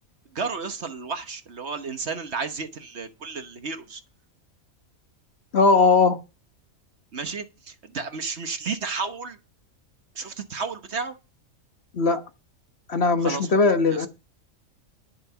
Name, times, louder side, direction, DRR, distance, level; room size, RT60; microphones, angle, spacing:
voice 1, 0.3-4.0 7.1-9.4 10.1-11.1 13.2-13.5 13.9-14.1, right 4 dB, 55° right, 1.4 m, -32 dB
voice 2, 5.5-6.2 11.9-12.2 12.9-14.1, left 4 dB, 50° left, 1.4 m, -19 dB
11.5 x 6.0 x 7.1 m
omnidirectional pair, 1.4 m